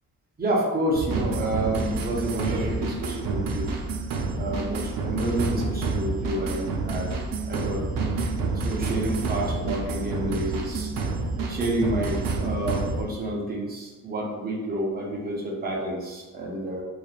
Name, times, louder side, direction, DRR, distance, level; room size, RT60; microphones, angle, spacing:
voice 1, 0.4-3.7 4.4-7.1 7.5-7.8 8.1-8.2 8.6-10.9 11.5-16.8, right 1 dB, 30° right, -2 dB, 0.5 m, -29 dB
sound 1, 0.9-13.0, right 3 dB, 80° right, 0.5 m, -28 dB
3.2 x 2.3 x 2.3 m, 1.2 s
wide cardioid pair, 175°, 33 cm